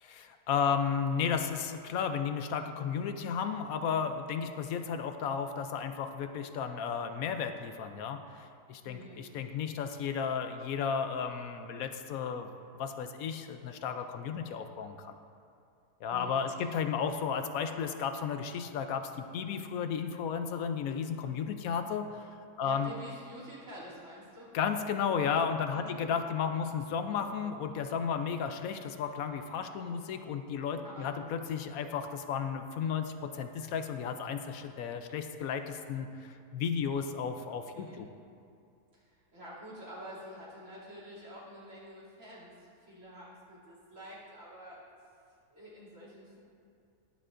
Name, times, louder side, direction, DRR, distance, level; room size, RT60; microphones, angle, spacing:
voice 1, 0.0-12.5 12.8-15.2 16.0-22.1 22.6-22.9 24.5-38.1, left 7 dB, 70° left, 7 dB, 1.0 m, -33 dB
voice 2, 8.8-9.2 16.1-16.7 22.6-24.5 25.7-26.0 30.8-31.1 37.7-38.0 38.9-44.9 45.5-46.4, equal, 55° right, -7 dB, 3.2 m, -48 dB
21.0 x 7.1 x 2.5 m, 2.5 s
omnidirectional pair, 1.6 m